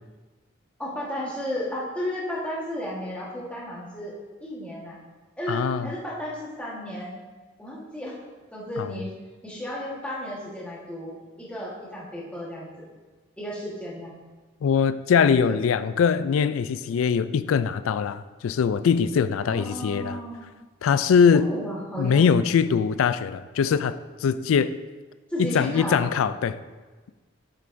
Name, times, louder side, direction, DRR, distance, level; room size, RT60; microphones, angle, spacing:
voice 1, 0.8-4.1 4.4-5.0 5.4-7.1 7.6-8.2 8.5-9.1 9.4-12.7 13.4-14.1 15.5-15.6 19.5-20.5 21.3-22.2 25.3-26.0, equal, 5° left, -6 dB, 1.4 m, -33 dB
voice 2, 5.5-5.9 8.8-8.9 14.6-20.2 20.8-21.5 22.0-24.8 25.4-26.6, left 6 dB, 80° left, 14 dB, 0.3 m, -22 dB
7.5 x 6.7 x 2.6 m, 1.3 s
head